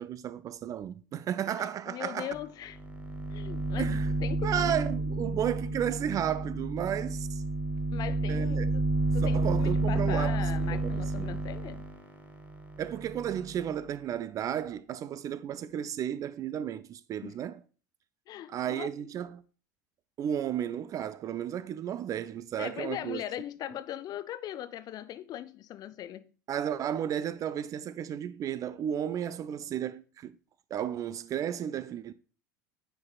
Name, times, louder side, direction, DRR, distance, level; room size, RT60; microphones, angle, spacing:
voice 1, 0.0-2.3 3.8-4.1 4.4-7.4 8.3-8.7 9.2-11.4 12.8-17.6 18.5-19.4 20.2-23.2 26.5-30.4 30.7-32.1, right 10 dB, 30° right, 0.3 m, -33 dB
voice 2, 1.5-2.8 3.3-3.9 4.2-4.8 7.9-8.8 9.1-11.8 17.2-17.3 18.3-19.1 22.6-26.3, left 12 dB, 40° left, 0.4 m, -39 dB
sound 1, 2.3-2.4 2.7-13.8, right 2 dB, 15° right, 1.0 m, -31 dB
9.3 x 4.6 x 2.3 m
figure-of-eight pair, 75°, 11 cm